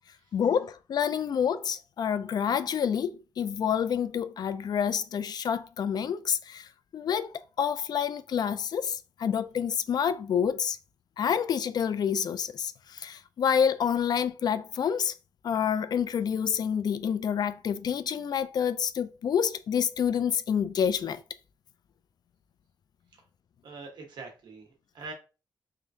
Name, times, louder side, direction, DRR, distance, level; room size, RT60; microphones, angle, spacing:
voice 1, 0.3-10.8 11.2-15.1 15.4-21.2, left 8 dB, 60° left, 0.3 m, -28 dB
voice 2, 23.6-25.1, right 4 dB, 75° right, 1.3 m, -44 dB
3.6 x 3.3 x 2.7 m
wide cardioid pair, 115°, 8 cm